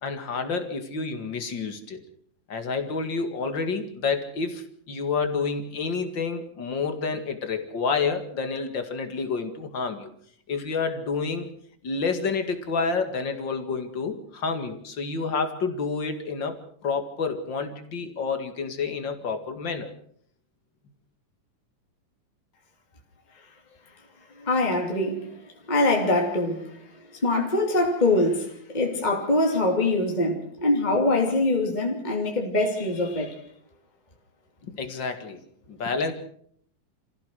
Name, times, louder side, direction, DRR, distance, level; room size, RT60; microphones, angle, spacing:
voice 1, 0.0-2.0 2.5-10.1 10.5-11.5 11.8-19.9 34.6-35.4 35.7-36.1, left 4 dB, 40° left, 2.3 m, -29 dB
voice 2, 24.3-25.3 25.7-26.8 27.1-33.4, left 2 dB, 15° left, 2.6 m, -24 dB
27.0 x 16.0 x 6.3 m
omnidirectional pair, 3.7 m